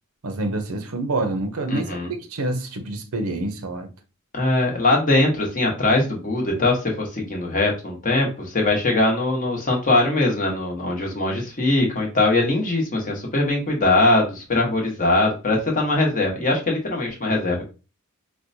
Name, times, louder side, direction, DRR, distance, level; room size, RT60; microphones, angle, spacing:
voice 1, 0.2-3.9, right 2 dB, 75° right, 0.6 m, -27 dB
voice 2, 1.7-2.1 4.3-17.7, left 2 dB, 35° left, 1.0 m, -21 dB
4.4 x 2.1 x 2.6 m
head